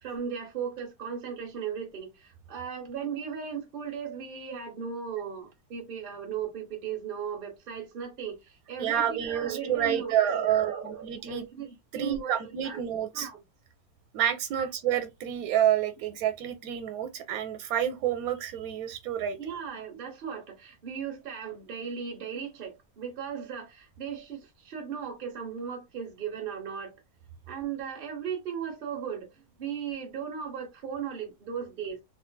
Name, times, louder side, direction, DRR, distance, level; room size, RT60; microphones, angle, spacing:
voice 1, 0.0-12.8 13.1-13.4 14.6-14.7 19.4-27.0 27.5-32.0, right 7 dB, 45° right, 1.0 m, -37 dB
voice 2, 8.8-11.4 11.9-13.3 14.1-19.4, right 10 dB, 90° right, 1.0 m, -28 dB
3.6 x 2.4 x 2.2 m
omnidirectional pair, 1.5 m